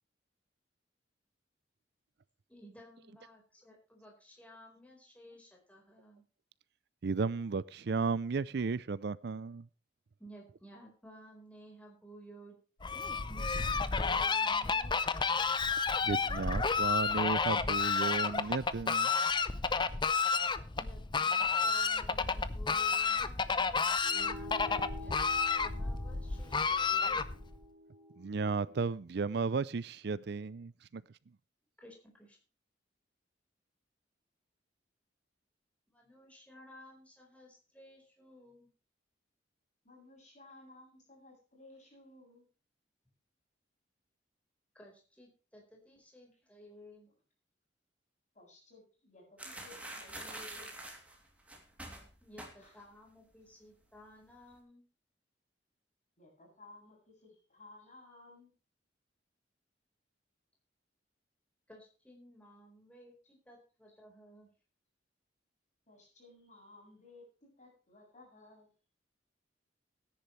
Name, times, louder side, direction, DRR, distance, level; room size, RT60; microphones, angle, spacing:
voice 1, 2.5-6.2 10.2-12.6 13.3-13.5 13.9-15.1 20.7-23.4 24.1-25.2 25.6-27.2 31.8-32.4 35.9-38.7 44.7-47.1 52.2-54.8 61.7-64.5, equal, 5° left, 4.5 m, -55 dB
voice 2, 7.0-9.7 16.0-19.1 28.2-31.0, right 4 dB, 65° right, 0.5 m, -34 dB
Fowl, 12.8-27.6, left 5 dB, 25° left, 0.7 m, -31 dB
sound 1, 24.0-28.8, left 1 dB, 25° right, 1.7 m, -49 dB
voice 3, 39.8-42.5 46.3-46.4 48.3-50.7 52.6-52.8 56.2-58.5 65.9-68.7, left 2 dB, 40° left, 7.5 m, -57 dB
sound 2, 49.4-52.9 53.2-53.5 53.8-54.4, right 1 dB, 10° right, 2.9 m, -46 dB
17.5 x 10.5 x 3.2 m
head